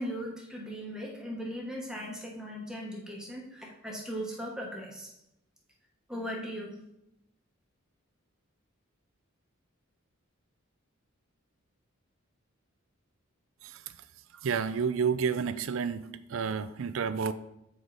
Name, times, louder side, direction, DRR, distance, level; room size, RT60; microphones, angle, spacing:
voice 1, 0.0-5.1 6.1-6.7, equal, 5° right, -2 dB, 1.1 m, -38 dB
voice 2, 14.4-16.0 16.3-17.3, right 6 dB, 70° right, 13 dB, 0.4 m, -29 dB
7.9 x 4.8 x 4.0 m, 0.83 s
head